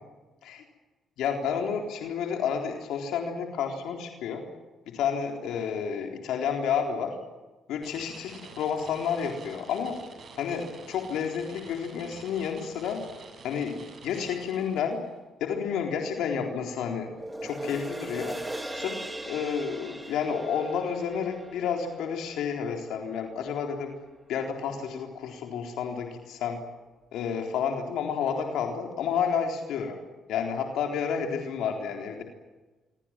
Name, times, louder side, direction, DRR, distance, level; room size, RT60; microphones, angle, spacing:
voice 1, 1.2-4.5 4.9-7.2 7.7-10.0 10.4-13.0 13.4-15.0 15.4-17.1 17.4-18.4 18.7-23.9 24.3-26.6 27.1-30.0 30.3-32.2, left 7 dB, 85° left, 3 dB, 3.9 m, -30 dB
sound 1, 7.8-15.1, right 4 dB, 55° right, 7.9 m, -48 dB
sound 2, 17.1-23.6 24.1-24.2, right 1 dB, 10° right, 3.8 m, -40 dB
26.5 x 24.5 x 7.6 m, 1.2 s
cardioid pair, 90°, 0 cm